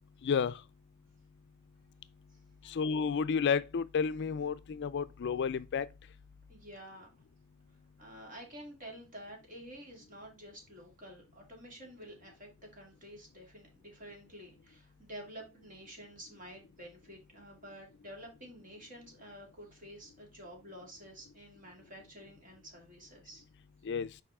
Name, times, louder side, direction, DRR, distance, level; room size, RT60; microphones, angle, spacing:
voice 1, 0.2-0.6 2.7-5.9 23.8-24.1, left 6 dB, 55° left, 0.4 m, -31 dB
voice 2, 2.3-2.8 6.5-7.1 8.0-23.4, equal, 40° right, 2.8 m, -50 dB
6.8 x 4.7 x 3.6 m
head